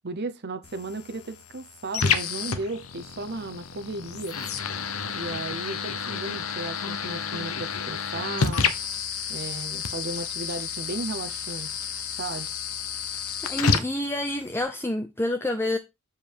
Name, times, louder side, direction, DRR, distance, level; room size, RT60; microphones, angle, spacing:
voice 1, 0.0-4.4 5.1-8.7 9.3-11.9 12.2-12.5, right 2 dB, 50° right, 0.9 m, -35 dB
sound 1, 0.6-14.6, left 6 dB, 80° left, 1.0 m, -30 dB
voice 2, 13.5-15.8, left 1 dB, 10° left, 0.6 m, -28 dB
7.4 x 4.8 x 4.7 m
head